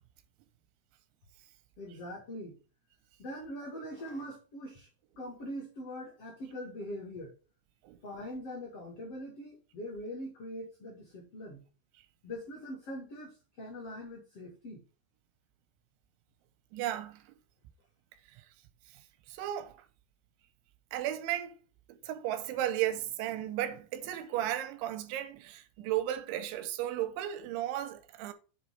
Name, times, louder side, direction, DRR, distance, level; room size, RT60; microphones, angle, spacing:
voice 1, 1.8-2.6 3.2-4.9 5.2-7.3 8.0-11.6 12.2-14.8, equal, 50° left, 1.8 m, -42 dB
voice 2, 16.7-17.2 19.3-19.7 20.9-21.5 21.9-28.3, right 12 dB, 90° right, 3.2 m, -34 dB
7.9 x 3.3 x 6.3 m
omnidirectional pair, 5.1 m